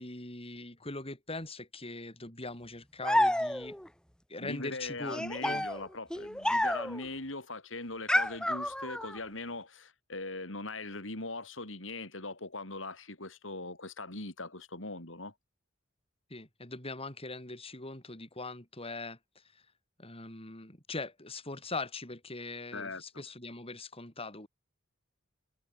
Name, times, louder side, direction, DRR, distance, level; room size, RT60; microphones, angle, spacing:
voice 1, 0.0-3.8 4.3-5.7 16.3-19.2 19.5-19.6 20.0-24.5, left 2 dB, 30° left, 8.0 m, -41 dB
sound 1, 3.0-3.9 5.1-7.1 8.1-9.2, left 1 dB, 5° left, 2.0 m, -30 dB
voice 2, 4.4-15.3 22.7-23.2, left 2 dB, 75° left, 6.4 m, -40 dB
head